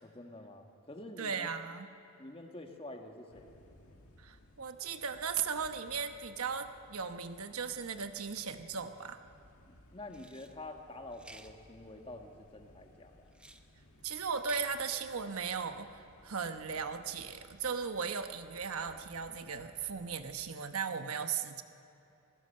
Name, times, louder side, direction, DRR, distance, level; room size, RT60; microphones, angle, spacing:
voice 1, 0.0-1.5 2.2-3.5 9.6-13.3, left 2 dB, 25° left, 4 dB, 1.5 m, -48 dB
voice 2, 1.2-1.9 4.2-9.2 14.0-21.6, right 6 dB, 85° right, 8 dB, 1.0 m, -37 dB
sound 1, 3.3-20.5, left 1 dB, 85° left, 1.9 m, -61 dB
sound 2, 10.1-10.5 11.1-11.5 13.3-13.6 14.3-14.7, right 2 dB, 5° right, 0.7 m, -52 dB
27.0 x 16.0 x 6.7 m, 2.9 s
head